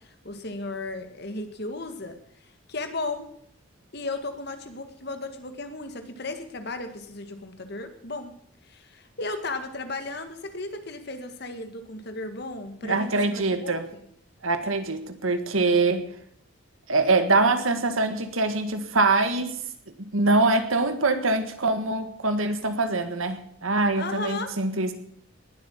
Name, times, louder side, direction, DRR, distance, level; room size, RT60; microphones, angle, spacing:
voice 1, 0.0-3.3 3.9-8.3 8.6-14.1 23.9-24.6, left 2 dB, 50° left, 7 dB, 1.8 m, -35 dB
voice 2, 12.8-13.8 14.4-16.0 16.9-19.6 20.1-24.9, right 3 dB, 80° right, 8 dB, 1.8 m, -24 dB
19.5 x 8.0 x 7.3 m, 0.66 s
head